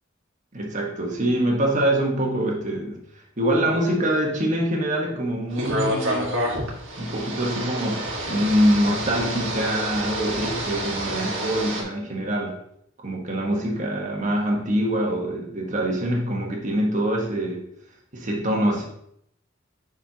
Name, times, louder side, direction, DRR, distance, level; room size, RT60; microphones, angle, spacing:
voice 1, 0.5-3.0 3.4-6.5 7.0-12.6 13.0-17.6 18.1-18.9, right 1 dB, 40° right, 0 dB, 1.3 m, -24 dB
sound 1, 5.5-11.8, right 1 dB, 70° right, 1.6 m, -28 dB
7.0 x 5.5 x 2.8 m, 0.71 s
head